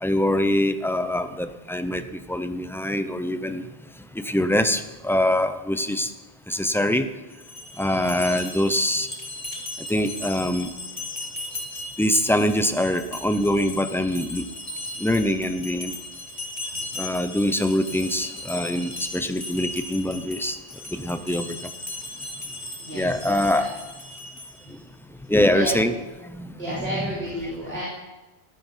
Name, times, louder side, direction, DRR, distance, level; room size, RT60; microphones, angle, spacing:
voice 1, 0.0-2.0 2.3-3.6 4.2-6.1 6.5-7.0 7.8-9.1 9.9-10.7 12.0-14.4 15.0-15.9 17.0-20.6 20.9-21.6 22.9-23.7 25.3-25.9 26.3-27.1, left 1 dB, 5° left, 9 dB, 0.6 m, -24 dB
sound 1, 7.3-24.8, left 2 dB, 35° left, 2.0 m, -37 dB
voice 2, 22.8-23.6 24.6-24.7 25.5-25.8 26.6-27.8, right 1 dB, 70° right, -5 dB, 3.2 m, -31 dB
14.0 x 12.5 x 5.8 m, 1.1 s
omnidirectional pair, 1.1 m